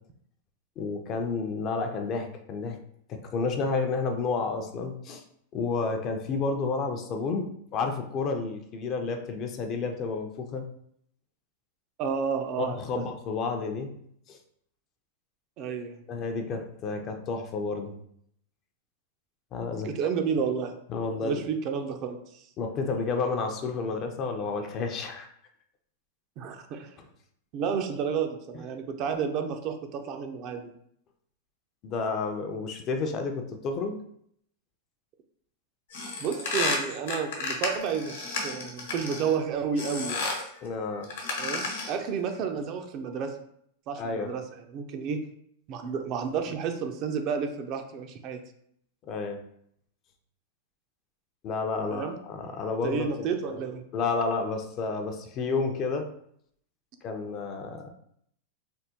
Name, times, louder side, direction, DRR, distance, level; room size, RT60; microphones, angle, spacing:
voice 1, 0.8-2.8 3.1-5.2 5.5-10.6 12.6-13.9 14.3-14.4 16.1-17.9 19.5-19.9 20.9-21.4 22.6-25.3 27.0-27.1 31.8-34.0 40.6-41.1 44.0-44.3 49.0-49.4 51.4-53.1 53.4-53.6 53.9-56.1 57.0-57.9, left 4 dB, 35° left, 4 dB, 0.5 m, -31 dB
voice 2, 12.0-13.0 15.6-16.0 19.8-20.8 21.2-22.4 26.4-27.0 27.5-30.7 36.2-40.3 41.4-43.4 43.9-44.4 44.7-45.2 45.7-48.4 51.9-52.2 52.8-53.8, right 6 dB, 45° right, 6 dB, 0.4 m, -31 dB
sound 1, 35.9-39.4 39.8-40.5 41.0-42.0, left 3 dB, 80° left, 1.0 m, -32 dB
3.4 x 2.1 x 2.8 m, 0.68 s
hypercardioid pair, 125°, 0 cm